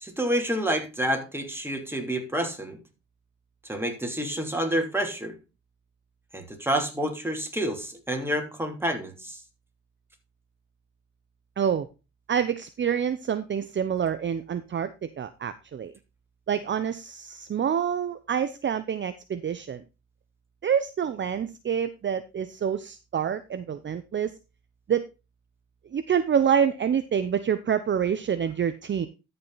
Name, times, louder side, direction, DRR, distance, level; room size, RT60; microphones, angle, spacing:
voice 1, 0.0-2.8 3.6-5.3 6.3-9.4, right 1 dB, 10° right, 3 dB, 2.9 m, -28 dB
voice 2, 11.6-11.9 12.3-15.9 16.5-19.8 20.6-24.4 24.9-25.0 25.9-29.1, right 8 dB, 40° right, 11 dB, 0.7 m, -27 dB
13.0 x 5.6 x 4.0 m, 0.28 s
cardioid pair, 90°, 30 cm